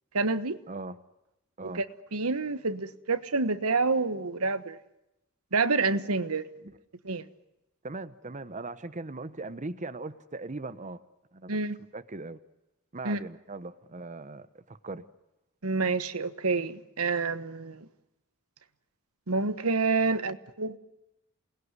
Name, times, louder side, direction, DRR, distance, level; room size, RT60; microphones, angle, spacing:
voice 1, 0.1-0.6 1.6-1.8 2.1-4.8 5.5-6.5 7.0-7.3 11.5-11.8 13.0-13.2 15.6-17.9 19.3-20.8, right 3 dB, 90° right, 12 dB, 1.3 m, -28 dB
voice 2, 0.7-1.0 1.6-1.8 6.6-6.7 7.8-11.0 11.3-11.6 11.9-12.4 12.9-15.0, right 3 dB, 35° right, 13 dB, 1.0 m, -39 dB
28.0 x 20.0 x 9.7 m, 0.91 s
head